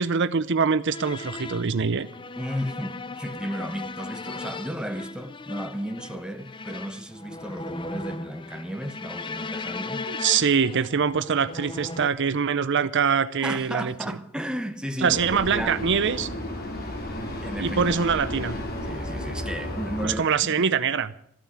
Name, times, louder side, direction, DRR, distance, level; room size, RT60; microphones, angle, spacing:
voice 1, 0.0-2.1 10.1-13.9 15.0-16.3 17.6-18.6 20.0-21.1, right 6 dB, 60° right, 0.6 m, -24 dB
sound 1, 0.9-12.1, left 3 dB, 25° left, 0.6 m, -37 dB
voice 2, 2.4-10.0 13.4-15.2 15.5-15.8 17.4-17.8 18.9-20.7, equal, 5° right, 1.1 m, -34 dB
Vehicle, 15.1-20.1, left 1 dB, 45° left, 3.0 m, -33 dB
14.0 x 9.3 x 9.8 m
head